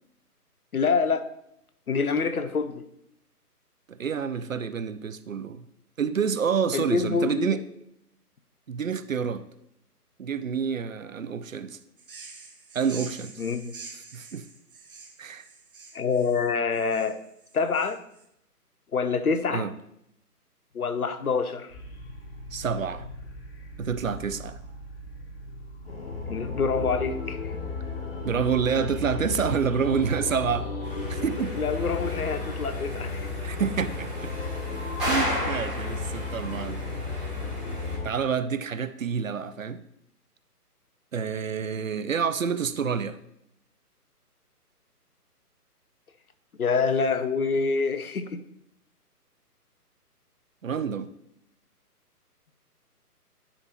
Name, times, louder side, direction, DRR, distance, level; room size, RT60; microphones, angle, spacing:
voice 1, 0.7-1.3 1.9-2.8 6.7-7.6 13.4-13.7 15.9-17.2 17.5-18.0 18.9-19.7 20.7-21.7 26.3-27.4 31.6-33.3 46.6-48.4, left 5 dB, 65° left, 10 dB, 0.8 m, -26 dB
voice 2, 3.9-5.6 6.0-7.6 8.7-9.4 10.2-11.8 12.7-13.4 14.1-14.5 15.2-15.4 19.5-19.7 22.5-23.0 23.8-24.6 28.2-30.7 31.1-31.6 33.4-34.3 35.1-36.8 38.0-39.8 41.1-43.2 50.6-51.1, right 6 dB, 60° right, 13 dB, 0.5 m, -28 dB
sound 1, 12.0-18.2, right 4 dB, 35° right, 0.9 m, -46 dB
sound 2, 21.7-38.1, left 3 dB, 40° left, 1.1 m, -34 dB
sound 3, 30.8-37.9, equal, ahead, 2.9 m, -35 dB
9.8 x 5.1 x 3.0 m, 0.76 s
figure-of-eight pair, 140°, 47 cm